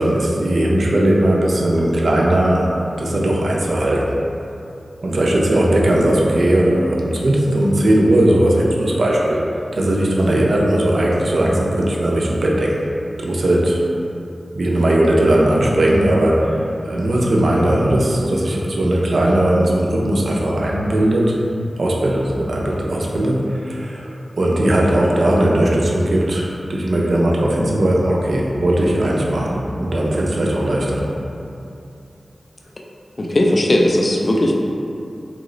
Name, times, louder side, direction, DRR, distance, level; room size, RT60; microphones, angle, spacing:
voice 1, 0.0-4.2 5.0-9.4 9.7-12.9 13.2-13.8 14.5-21.3 21.8-31.1, right 1 dB, 70° right, -3 dB, 0.4 m, -18 dB
voice 2, 33.2-34.5, left 1 dB, 45° left, 0 dB, 0.3 m, -17 dB
3.0 x 2.0 x 3.7 m, 2.7 s
wide cardioid pair, 60°, 0 cm